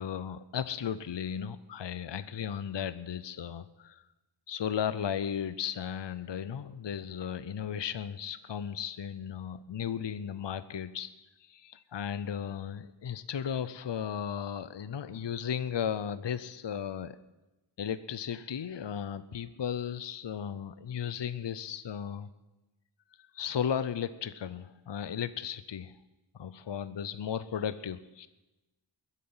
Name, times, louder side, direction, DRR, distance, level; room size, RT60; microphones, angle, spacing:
voice 1, 0.0-4.0 4.5-11.1 11.5-17.2 17.8-22.3 23.3-25.9 26.4-28.3, left 8 dB, 60° left, 15 dB, 0.6 m, -35 dB
21.5 x 8.3 x 5.6 m, 1.0 s
wide cardioid pair, 50°, 49 cm